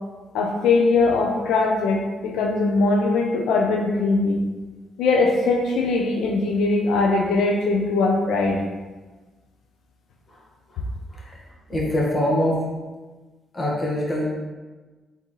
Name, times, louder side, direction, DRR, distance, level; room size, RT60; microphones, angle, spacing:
voice 1, 0.3-4.4 5.0-8.6, left 3 dB, 85° left, 0 dB, 0.5 m, -21 dB
voice 2, 11.7-12.6 13.5-14.3, left 1 dB, 30° left, -3 dB, 1.3 m, -23 dB
4.0 x 3.6 x 3.1 m, 1.3 s
cardioid pair, 90°, 0 cm